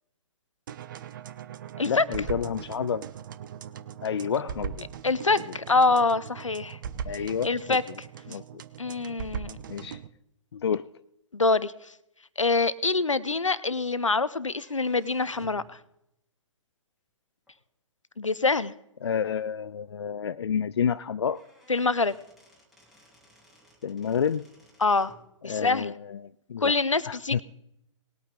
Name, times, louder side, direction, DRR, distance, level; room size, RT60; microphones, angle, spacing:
sound 1, 0.7-10.1, right 8 dB, 40° right, 0.7 m, -39 dB
voice 1, 1.8-3.0 4.0-4.9 7.0-7.8 8.3-8.4 9.7-10.0 10.5-10.9 19.0-21.4 23.8-24.4 25.4-26.7 27.1-27.4, left 7 dB, 55° left, 14 dB, 0.4 m, -29 dB
voice 2, 5.0-6.8 7.4-7.8 8.8-9.6 11.3-11.9 12.4-15.8 18.2-18.7 21.7-22.1 24.8-25.1 25.4-25.9 26.6-27.4, left 3 dB, 80° left, 17 dB, 0.8 m, -25 dB
sound 2, 14.5-15.7 17.5-17.6 18.5-18.6 19.0-19.1 19.4-19.5 20.9-21.0 21.2-25.2, right 1 dB, ahead, 3.1 m, -58 dB
19.5 x 8.9 x 3.8 m, 0.80 s
figure-of-eight pair, 125°, 16 cm